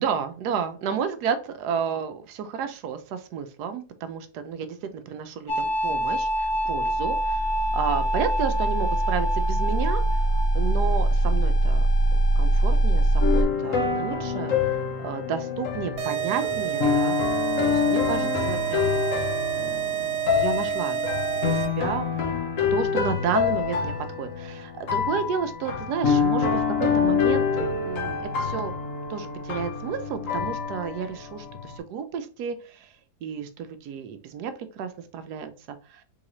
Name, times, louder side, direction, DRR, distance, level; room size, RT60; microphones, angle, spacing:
voice 1, 0.0-10.3 10.5-11.8 12.4-17.2 17.6-19.2 19.5-21.0 21.4-22.1 22.7-28.7 29.1-32.9 33.2-36.0, right 7 dB, 90° right, 9 dB, 1.2 m, -32 dB
sound 1, 5.5-13.4, right 1 dB, 75° left, 1.5 m, -22 dB
sound 2, 13.2-31.8, left 6 dB, 55° left, 1.3 m, -26 dB
sound 3, 16.0-21.9, right 11 dB, 75° right, 1.4 m, -29 dB
3.9 x 3.7 x 3.0 m, 0.38 s
omnidirectional pair, 1.7 m